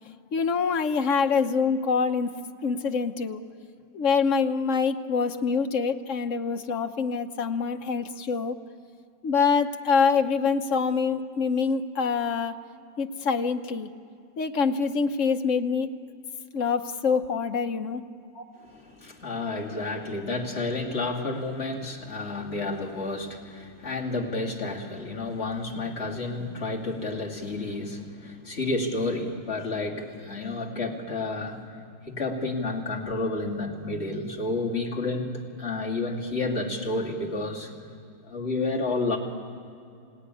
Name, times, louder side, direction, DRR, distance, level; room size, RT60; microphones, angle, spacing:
voice 1, 0.3-2.3 2.6-3.4 3.9-8.6 9.2-12.5 13.0-13.9 14.4-15.9 16.5-18.0, left 5 dB, 50° left, 6 dB, 0.9 m, -25 dB
voice 2, 18.3-31.7 32.0-37.7 38.2-39.2, left 2 dB, 30° left, -2 dB, 2.7 m, -30 dB
26.0 x 17.5 x 9.8 m, 2.6 s
omnidirectional pair, 2.3 m